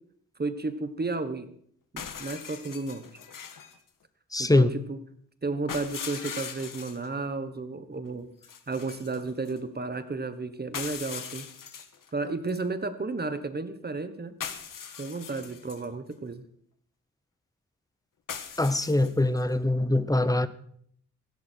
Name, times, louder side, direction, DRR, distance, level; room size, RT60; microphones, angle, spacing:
voice 1, 0.4-1.5 1.9-3.1 4.4-5.0 5.4-8.3 8.7-11.5 12.1-14.3 15.0-16.4, right 3 dB, 30° right, 10 dB, 1.2 m, -33 dB
sound 1, 2.0-3.8 5.7-7.1 8.4-9.6 10.7-12.1 12.5-12.6 14.4-15.9 18.3-19.4, left 7 dB, 85° left, 1.5 m, -40 dB
voice 2, 4.3-4.7 18.6-20.5, left 2 dB, 10° left, 13 dB, 0.8 m, -23 dB
17.0 x 16.0 x 4.5 m, 0.65 s
wide cardioid pair, 150°, 32 cm